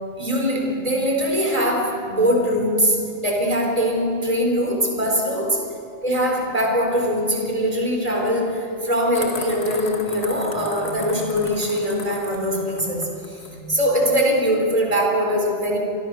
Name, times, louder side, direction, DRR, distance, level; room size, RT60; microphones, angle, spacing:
voice 1, 0.2-3.0 3.2-5.6 6.0-15.8, equal, 35° right, 0 dB, 4.3 m, -22 dB
sound 1, 9.1-13.6, left 3 dB, 90° left, 2.0 m, -36 dB
29.5 x 25.0 x 6.4 m, 2.6 s
omnidirectional pair, 1.1 m